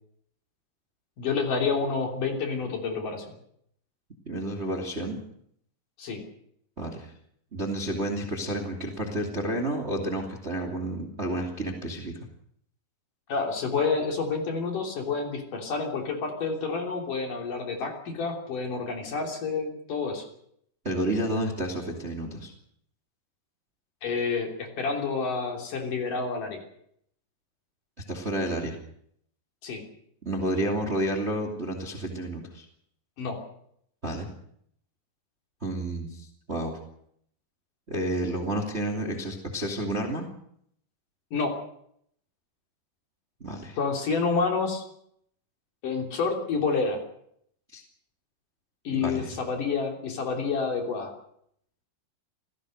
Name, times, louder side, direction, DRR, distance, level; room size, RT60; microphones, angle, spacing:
voice 1, 1.2-3.2 6.0-6.2 13.3-20.2 24.0-26.6 29.6-29.8 33.2-33.4 41.3-41.6 43.8-44.8 45.8-47.0 48.8-51.1, left 4 dB, 50° left, 2 dB, 4.5 m, -29 dB
voice 2, 4.3-5.2 6.8-7.1 7.5-12.2 20.8-22.5 28.1-28.8 30.3-32.7 34.0-34.3 35.6-36.7 37.9-40.2 43.4-43.8 47.7-47.8 48.9-49.3, right 1 dB, 20° right, 2 dB, 2.0 m, -30 dB
27.0 x 17.0 x 6.5 m, 0.69 s
omnidirectional pair, 4.9 m